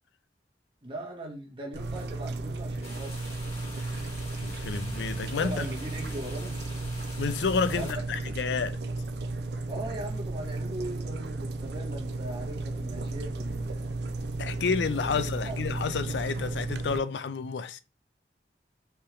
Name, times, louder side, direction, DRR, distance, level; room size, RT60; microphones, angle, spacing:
voice 1, 0.8-3.2 5.4-6.6 7.7-7.9 8.2-8.3 9.7-14.1 15.1-15.7, right 1 dB, 30° right, 1.4 m, -40 dB
sound 1, 1.7-17.0, right 2 dB, 60° right, 0.5 m, -34 dB
sound 2, 2.8-8.0, left 2 dB, 35° left, 2.2 m, -46 dB
voice 2, 4.4-5.7 7.2-8.8 14.4-17.8, left 5 dB, 70° left, 0.4 m, -30 dB
4.4 x 3.5 x 3.1 m
head